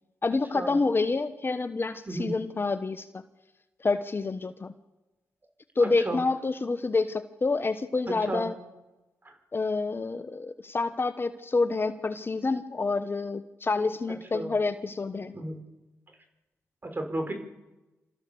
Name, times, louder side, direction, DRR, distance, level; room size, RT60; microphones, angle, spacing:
voice 1, 0.2-3.2 3.8-4.7 5.8-8.5 9.5-15.3, left 3 dB, 40° left, 11 dB, 1.1 m, -28 dB
voice 2, 5.8-6.2 8.2-8.4 9.2-9.3 14.3-14.5 15.3-15.6 16.8-17.3, right 1 dB, 35° right, 5 dB, 5.0 m, -33 dB
27.5 x 14.0 x 7.0 m, 1.1 s
supercardioid pair, 45°, 6 cm